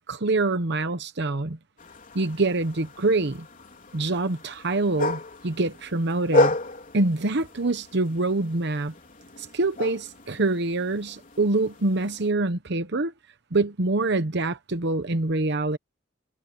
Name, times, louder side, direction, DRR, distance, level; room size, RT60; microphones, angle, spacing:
voice 1, 0.1-1.6 2.1-3.5 3.9-6.6 6.9-8.9 9.4-13.1 13.5-15.8, right 2 dB, 55° right, 1.0 m, -25 dB
sound 1, 1.8-12.3, left 2 dB, 40° left, 3.9 m, -32 dB
head